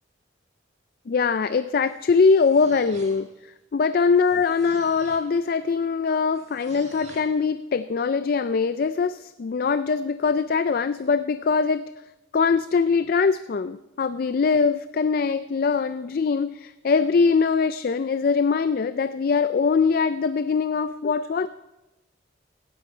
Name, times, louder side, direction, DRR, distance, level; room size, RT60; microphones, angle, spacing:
voice 1, 1.1-11.8 12.3-21.5, left 5 dB, 50° left, 13 dB, 0.4 m, -22 dB
sound 1, 1.9-3.5 4.1-5.4 6.3-7.4, right 2 dB, 35° right, 1.7 m, -48 dB
17.5 x 13.0 x 4.4 m, 1.0 s
head